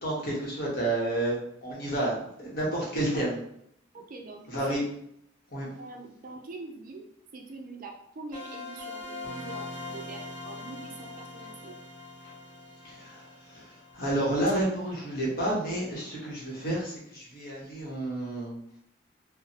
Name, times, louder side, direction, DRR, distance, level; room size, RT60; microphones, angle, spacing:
voice 1, 0.0-3.4 4.5-4.8 5.5-5.7 12.8-18.6, right 1 dB, 45° left, -4 dB, 1.0 m, -30 dB
voice 2, 2.8-3.2 3.9-4.4 5.8-7.1 7.3-11.7, right 3 dB, 45° right, 1 dB, 0.4 m, -44 dB
sound 1, 8.3-15.0, left 2 dB, 5° left, 1.3 m, -42 dB
3.0 x 2.1 x 2.7 m, 0.73 s
head